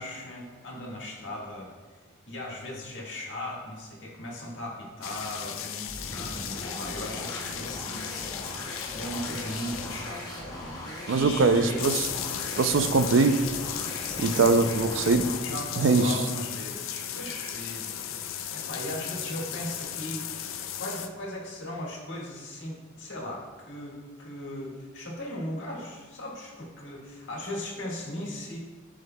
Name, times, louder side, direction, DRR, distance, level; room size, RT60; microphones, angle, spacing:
voice 1, 0.0-1.7 2.3-10.4 10.7-11.8 12.7-12.9 14.0-14.7 15.4-28.6, left 1 dB, 60° left, -3 dB, 1.7 m, -38 dB
sound 1, 5.0-21.1, left 9 dB, 80° left, 0.4 m, -36 dB
sound 2, 5.9-15.5, left 1 dB, 20° left, 1.3 m, -39 dB
voice 2, 11.1-12.0 12.6-13.4 14.2-15.3 15.8-16.1, right 4 dB, 65° right, 9 dB, 0.4 m, -22 dB
12.0 x 5.0 x 2.2 m, 1.4 s
head